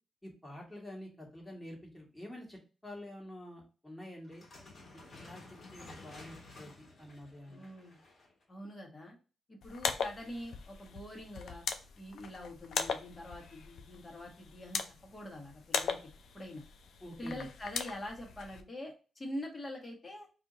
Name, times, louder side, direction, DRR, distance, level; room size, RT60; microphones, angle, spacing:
voice 1, 0.2-4.4 5.2-6.7 7.0-7.6 17.0-17.5, left 1 dB, 10° left, -2 dB, 1.7 m, -48 dB
sound 1, 4.2-8.4, left 3 dB, 50° left, 1.5 m, -53 dB
voice 2, 7.5-8.0 8.5-9.2 9.5-11.6 11.9-16.0 16.3-16.6 17.2-20.3, left 1 dB, 30° left, 1 dB, 1.4 m, -44 dB
sound 2, 9.6-18.6, left 6 dB, 75° left, 0.4 m, -40 dB
2.7 x 2.7 x 3.7 m, 0.34 s
cardioid pair, 65°, 0 cm